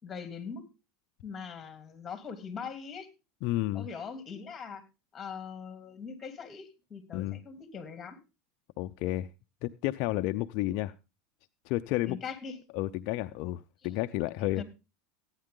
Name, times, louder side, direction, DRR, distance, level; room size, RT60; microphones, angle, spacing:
voice 1, 0.0-0.7 1.2-3.1 3.7-4.8 5.1-8.2 12.1-12.6 14.6-14.7, left 6 dB, 25° left, 9 dB, 2.9 m, -41 dB
voice 2, 3.4-3.9 7.1-7.4 8.8-9.3 9.6-10.9 11.7-12.2 12.7-14.6, left 16 dB, 60° left, 9 dB, 0.5 m, -31 dB
15.0 x 9.7 x 3.7 m, 0.29 s
supercardioid pair, 120°, 0 cm